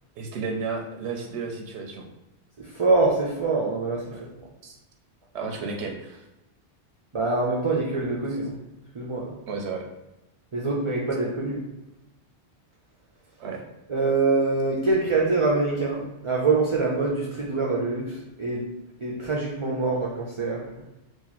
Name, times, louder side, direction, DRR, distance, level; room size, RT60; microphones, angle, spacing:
voice 1, 0.2-2.1 4.1-4.2 4.6-4.8 5.3-6.2 9.5-9.9 13.4-13.6, right 4 dB, 85° right, 1 dB, 0.9 m, -32 dB
voice 2, 2.6-4.1 4.4-4.5 7.1-8.6 8.9-9.4 10.5-11.6 13.9-18.7 19.0-20.8, right 3 dB, 40° right, -3 dB, 0.4 m, -25 dB
2.9 x 2.4 x 3.9 m, 0.93 s
omnidirectional pair, 1.1 m